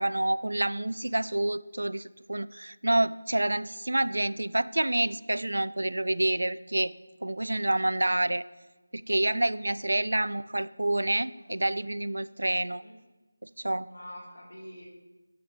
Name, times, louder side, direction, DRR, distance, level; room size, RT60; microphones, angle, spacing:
voice 1, 0.0-6.9 7.2-8.4 8.9-12.8 13.4-13.9, right 1 dB, 85° right, 19 dB, 0.4 m, -28 dB
voice 2, 10.0-10.3 11.4-11.5 12.8-13.0 13.9-14.9, equal, 90° left, -3 dB, 3.9 m, -46 dB
12.5 x 9.6 x 3.3 m, 1.2 s
figure-of-eight pair, 170°, 0 cm